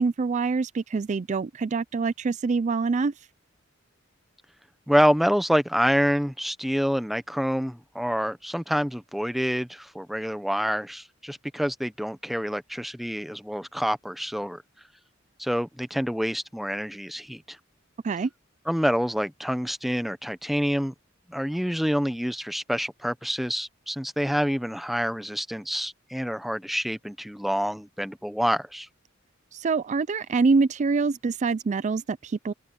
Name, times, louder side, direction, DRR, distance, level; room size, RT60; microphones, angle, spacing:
voice 1, 0.0-3.1 18.0-18.3 29.5-32.5, right 4 dB, 35° right, 0.4 m, -25 dB
voice 2, 4.9-14.6 15.4-17.6 18.7-20.9 21.3-28.9, equal, ahead, 0.8 m, -27 dB
open air
head